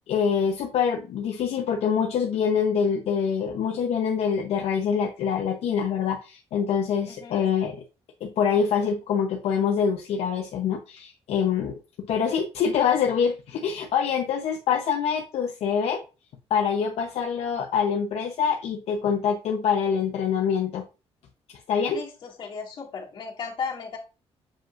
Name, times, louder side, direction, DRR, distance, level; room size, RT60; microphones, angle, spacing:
voice 1, 0.1-7.8 8.2-16.0 16.5-20.8 21.7-22.0, left 7 dB, 70° left, 2 dB, 0.8 m, -25 dB
voice 2, 21.9-24.0, left 5 dB, 45° left, -2 dB, 2.2 m, -35 dB
7.4 x 5.2 x 2.5 m, 0.31 s
cardioid pair, 155°, 11 cm